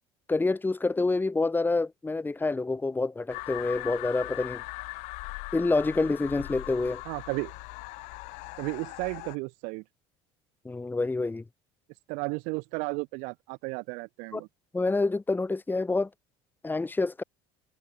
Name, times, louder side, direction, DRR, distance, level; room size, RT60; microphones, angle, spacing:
voice 1, 0.3-4.6 5.5-7.0 10.7-11.4 14.3-14.4 14.7-16.1 16.6-17.2, left 3 dB, 15° left, 2.1 m, -27 dB
sound 1, 3.3-9.4, left 26 dB, 70° left, 4.0 m, -40 dB
voice 2, 7.0-7.5 8.6-9.8 12.1-14.5, right 31 dB, 70° right, 4.6 m, -33 dB
hypercardioid pair, 75°, 13 cm